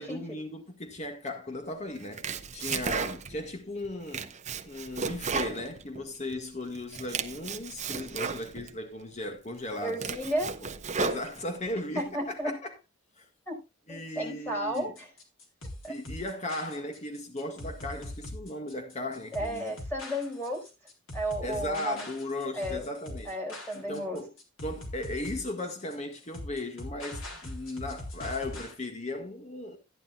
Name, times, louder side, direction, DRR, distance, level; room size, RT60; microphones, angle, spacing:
voice 1, 0.0-2.2 2.5-4.3 4.6-10.1 10.6-10.7 11.0-12.7 13.2-13.3 13.9-14.9 15.9-19.7 21.4-23.3 23.7-24.3 24.6-29.8, left 1 dB, 30° left, 1.8 m, -37 dB
Domestic sounds home sounds, 2.0-3.5 3.8-6.4 6.7-8.7 9.3-9.4 9.8-11.7, right 5 dB, 30° right, 0.8 m, -34 dB
voice 2, 9.8-10.5 11.9-12.5 13.5-13.6 13.9-15.1 15.8-16.0 19.3-20.6 21.1-22.1 22.6-22.9 23.2-24.2, equal, 10° left, 4.9 m, -33 dB
sound 1, 14.7-28.7, left 1 dB, 65° left, 3.7 m, -41 dB
14.5 x 10.5 x 2.4 m
head